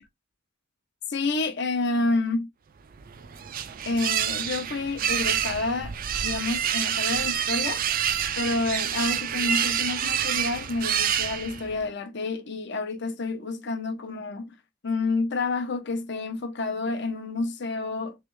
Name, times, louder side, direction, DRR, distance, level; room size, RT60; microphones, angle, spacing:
voice 1, 1.1-2.5 3.8-5.9 6.2-7.8 8.4-14.5 14.8-18.2, left 3 dB, 60° left, 0.7 m, -29 dB
sound 1, 2.9-11.8, right 9 dB, 45° right, 0.4 m, -28 dB
3.5 x 3.2 x 3.1 m
head